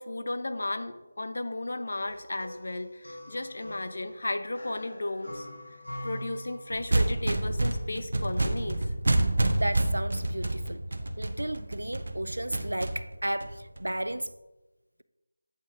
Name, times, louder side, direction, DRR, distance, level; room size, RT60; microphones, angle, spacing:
voice 1, 0.0-5.5 6.0-8.9, left 2 dB, 60° left, 0.8 m, -34 dB
sound 1, 2.0-7.2, equal, 80° left, 1.9 m, -44 dB
sound 2, 6.7-14.1, right 2 dB, 60° right, 0.9 m, -28 dB
voice 2, 9.5-10.8 11.2-14.3, right 1 dB, 80° right, 0.5 m, -33 dB
8.6 x 5.7 x 3.6 m
figure-of-eight pair, 165°, 0 cm